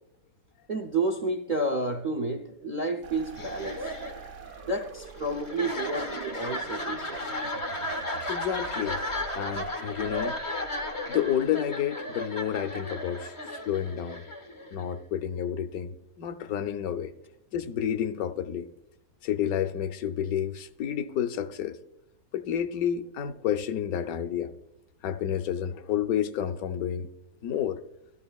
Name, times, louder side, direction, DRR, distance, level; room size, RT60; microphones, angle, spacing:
voice 1, 0.7-3.9 4.6-7.2, right 2 dB, 70° right, 0.4 m, -30 dB
sound 1, 3.0-11.5, right 5 dB, 85° right, 1.7 m, -47 dB
sound 2, 3.3-15.0, left 1 dB, 50° left, 0.3 m, -35 dB
voice 2, 8.3-9.0 9.3-10.4 11.1-14.2 14.7-17.1 17.5-18.7 19.2-21.8 22.3-24.5 25.0-27.1 27.4-27.8, left 9 dB, 70° left, 1.0 m, -30 dB
13.0 x 12.5 x 2.3 m
omnidirectional pair, 1.7 m